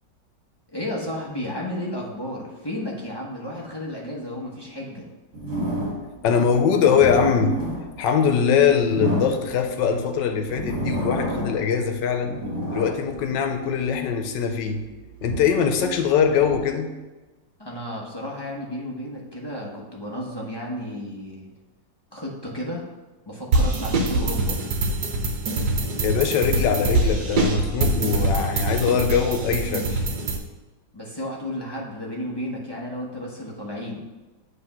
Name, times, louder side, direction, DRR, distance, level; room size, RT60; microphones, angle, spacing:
voice 1, 0.7-5.1 17.6-21.5 22.1-22.9 23.3-24.6 30.9-34.0, left 1 dB, 20° left, -3 dB, 0.7 m, -32 dB
sound 1, 5.3-6.2 6.7-9.9 10.4-11.7 12.0-14.0 14.5-16.6, equal, 40° right, 2.5 m, -30 dB
voice 2, 6.2-7.6 8.0-12.4 12.7-14.8 15.2-16.9 26.0-30.0, left 6 dB, 75° left, 6 dB, 1.4 m, -22 dB
sound 2, 23.5-30.4, right 2 dB, 65° right, 1.3 m, -24 dB
7.7 x 3.3 x 5.9 m, 1.2 s
omnidirectional pair, 2.0 m